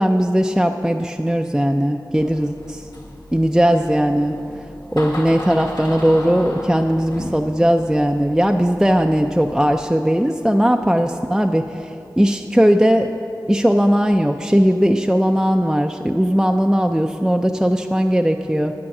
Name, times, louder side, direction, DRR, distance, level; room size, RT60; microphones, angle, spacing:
voice 1, 0.0-2.8 3.3-4.4 4.9-11.9 12.2-13.1 13.5-18.7, equal, 5° right, 4 dB, 0.4 m, -18 dB
Door, 2.2-9.8, left 1 dB, 85° left, 2.1 m, -35 dB
9.8 x 8.7 x 5.9 m, 2.7 s
wide cardioid pair, 55°, 8 cm